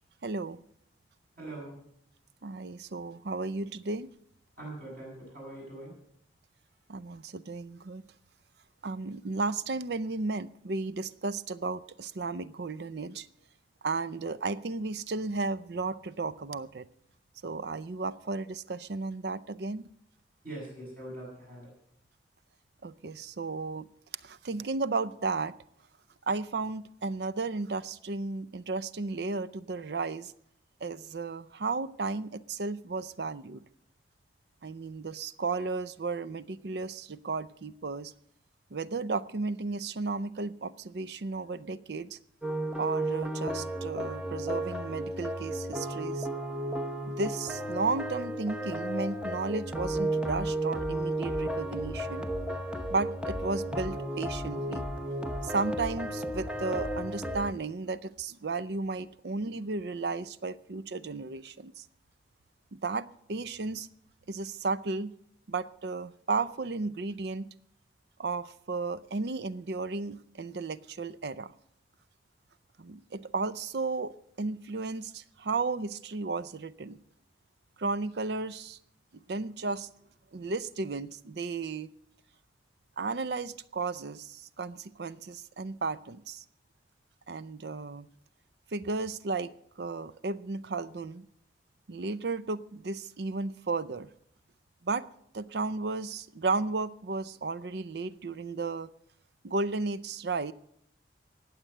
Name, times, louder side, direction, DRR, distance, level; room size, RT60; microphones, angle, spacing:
voice 1, 0.2-0.6 2.4-4.1 6.9-8.0 8.8-13.3 13.8-16.9 17.4-19.9 22.8-23.9 24.2-25.5 26.3-30.3 30.8-33.6 34.6-38.1 38.7-42.2 42.8-46.3 47.1-52.3 52.9-54.9 55.4-61.8 62.7-63.9 64.3-65.1 65.5-67.5 68.2-71.5 72.8-77.0 77.8-78.8 79.1-79.9 80.3-81.9 83.0-86.4 87.3-88.1 88.7-91.3 91.9-94.1 94.8-95.1 95.3-98.9 99.4-100.5, right 3 dB, 65° right, 16 dB, 0.6 m, -34 dB
voice 2, 1.4-1.8 4.6-5.9 20.4-21.7, right 1 dB, 50° right, -3 dB, 7.7 m, -42 dB
sound 1, 42.4-57.5, right 1 dB, 5° right, 0.8 m, -33 dB
19.0 x 7.4 x 6.6 m, 0.69 s
head